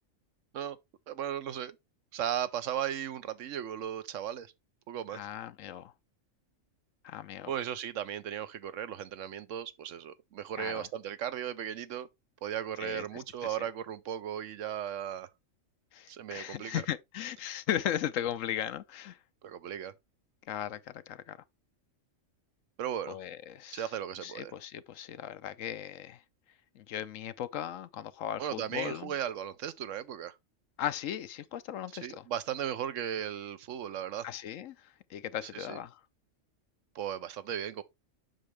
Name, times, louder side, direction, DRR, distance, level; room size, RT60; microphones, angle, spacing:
voice 1, 1.1-1.8 2.1-4.5 4.9-5.3 7.5-12.1 12.4-15.3 16.1-16.8 19.4-19.9 22.8-23.2 23.7-24.5 28.4-30.4 32.0-34.3 35.5-35.8 36.9-37.8, right 10 dB, 75° right, 1.0 m, -36 dB
voice 2, 5.1-5.9 7.0-7.5 10.6-10.9 12.8-13.6 15.9-19.2 20.5-21.4 23.1-23.9 24.2-26.2 26.7-29.1 30.8-32.2 34.2-36.0, left 10 dB, 75° left, 1.1 m, -37 dB
7.5 x 6.3 x 3.3 m
omnidirectional pair, 1.4 m